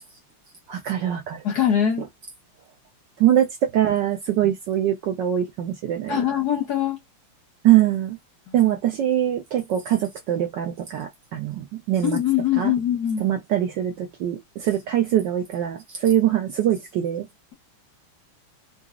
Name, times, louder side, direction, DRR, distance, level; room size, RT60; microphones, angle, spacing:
voice 1, 0.7-1.4 3.2-6.2 7.6-8.2 8.5-12.2 12.6-12.7 13.2-17.3, right 11 dB, 70° right, 1.1 m, -23 dB
voice 2, 1.4-2.1 6.1-7.0 8.5-8.8 12.0-13.2, left 9 dB, 65° left, 1.0 m, -23 dB
3.9 x 2.4 x 2.4 m
omnidirectional pair, 2.4 m